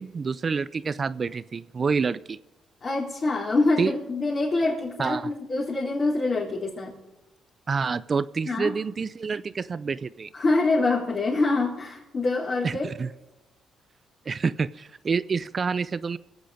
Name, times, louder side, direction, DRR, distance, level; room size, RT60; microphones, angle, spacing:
voice 1, 0.0-2.4 3.8-3.9 5.0-5.3 7.7-10.3 12.6-13.1 14.3-16.2, right 5 dB, 40° right, 16 dB, 0.5 m, -28 dB
voice 2, 2.8-7.0 8.5-8.8 10.3-12.9, left 3 dB, 40° left, -5 dB, 3.9 m, -25 dB
23.5 x 8.2 x 5.0 m, 0.99 s
cardioid pair, 90°, 0 cm